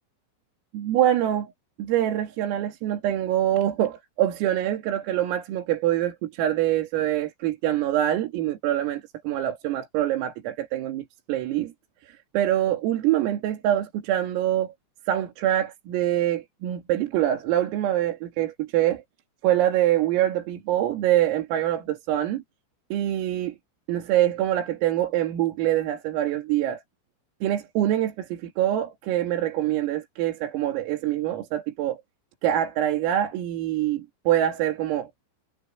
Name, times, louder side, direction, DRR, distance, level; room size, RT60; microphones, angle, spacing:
voice 1, 0.7-1.5 1.8-11.7 12.1-14.7 15.1-19.0 19.4-22.4 22.9-23.6 23.9-26.8 27.4-32.0 32.4-35.1, right 12 dB, 85° right, 5.2 m, -25 dB
omnidirectional pair, 5.9 m